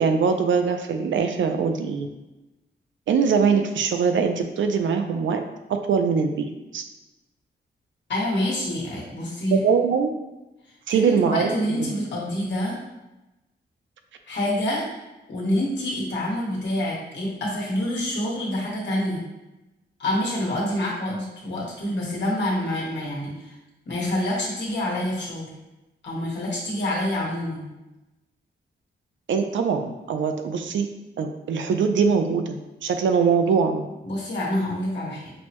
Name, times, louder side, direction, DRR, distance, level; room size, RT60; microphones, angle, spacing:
voice 1, 0.0-2.1 3.1-5.4 5.7-6.8 9.5-10.1 10.9-11.5 11.8-11.9 29.3-30.9 31.2-33.9, right 6 dB, 85° right, 6 dB, 0.4 m, -22 dB
voice 2, 8.1-9.6 10.9-12.8 14.3-14.9 15.3-19.2 20.0-23.6 23.9-25.5 26.0-27.7 34.0-35.3, left 1 dB, 70° left, -4 dB, 1.3 m, -27 dB
6.2 x 2.1 x 2.9 m, 1.0 s
wide cardioid pair, 110°, 19 cm